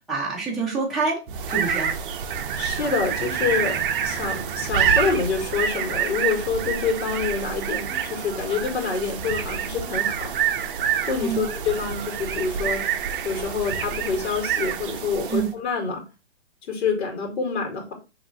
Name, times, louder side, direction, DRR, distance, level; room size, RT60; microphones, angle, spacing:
voice 1, 0.0-2.0 11.2-11.5 15.3-15.5, right 5 dB, ahead, -7 dB, 0.6 m, -27 dB
sound 1, 1.3-15.6, right 8 dB, 50° right, 0.5 m, -27 dB
voice 2, 2.6-10.3 11.1-12.8 13.2-16.0 16.7-17.9, left 5 dB, 70° left, 2 dB, 1.8 m, -27 dB
5.2 x 3.0 x 2.5 m, 0.28 s
hypercardioid pair, 155°, 34 cm